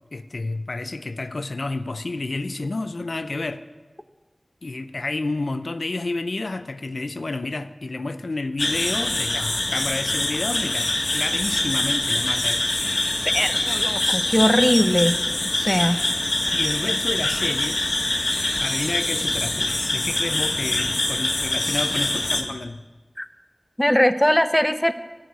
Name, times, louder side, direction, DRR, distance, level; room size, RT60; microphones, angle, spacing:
voice 1, 0.1-3.6 4.6-12.6 16.5-17.9 18.6-22.8, left 2 dB, 85° left, 10 dB, 0.5 m, -30 dB
sound 1, 8.6-22.4, left 1 dB, 60° left, 1.5 m, -24 dB
voice 2, 13.3-15.2 15.4-16.0 23.2-23.3 23.8-24.9, equal, 10° left, 10 dB, 0.7 m, -20 dB
12.5 x 6.4 x 9.3 m, 1.3 s
wide cardioid pair, 50°, 0 cm